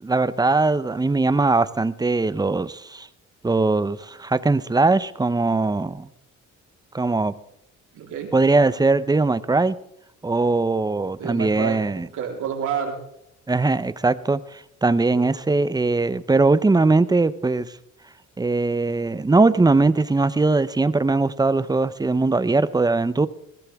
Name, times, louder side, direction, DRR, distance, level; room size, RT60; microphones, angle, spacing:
voice 1, 0.0-3.1 3.4-6.1 6.9-7.3 8.3-9.8 10.2-12.1 13.5-17.7 18.4-23.3, right 3 dB, 15° right, 15 dB, 0.7 m, -20 dB
voice 2, 7.9-8.3 11.2-13.0, right 7 dB, 80° right, 0 dB, 3.8 m, -29 dB
20.5 x 15.0 x 3.5 m, 0.76 s
cardioid pair, 90°, 30 cm